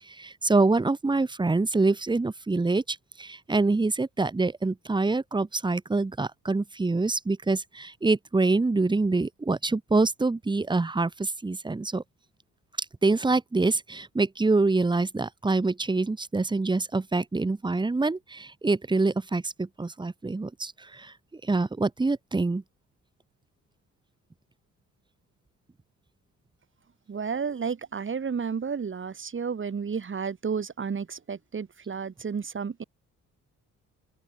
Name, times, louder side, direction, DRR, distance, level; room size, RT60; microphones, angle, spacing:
voice 1, 0.1-12.0 13.0-21.1 21.4-22.6, right 3 dB, 15° right, 1.3 m, -25 dB
voice 2, 27.1-32.8, right 6 dB, 40° right, 7.7 m, -32 dB
open air
cardioid pair, 90°, 30 cm